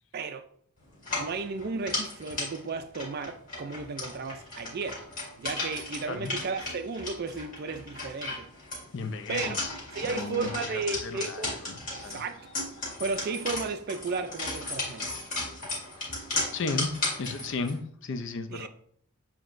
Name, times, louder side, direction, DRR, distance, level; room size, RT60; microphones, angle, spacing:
voice 1, 0.1-0.5 1.2-5.0 5.4-8.5 9.3-9.6 9.9-11.6 11.9-12.4 13.0-15.2 18.5-18.7, right 4 dB, 45° right, 0.3 m, -34 dB
sound 1, 1.0-17.8, left 2 dB, 40° left, 1.8 m, -35 dB
voice 2, 8.9-9.7 10.1-12.2 16.5-16.9 17.2-18.7, left 3 dB, 55° left, 0.5 m, -35 dB
7.3 x 2.9 x 2.5 m
head